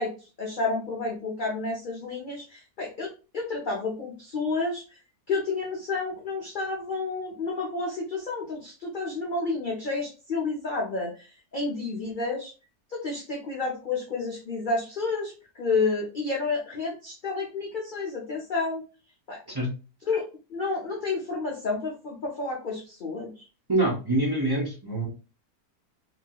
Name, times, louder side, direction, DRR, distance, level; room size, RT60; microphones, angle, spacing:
voice 1, 0.0-5.0 5.3-12.5 12.9-18.8 19.3-19.4 20.1-20.2 20.5-23.5, left 3 dB, 60° left, -2 dB, 0.5 m, -30 dB
voice 2, 23.7-25.1, right 2 dB, 20° right, -3 dB, 0.7 m, -25 dB
3.1 x 2.9 x 2.3 m, 0.33 s
omnidirectional pair, 1.7 m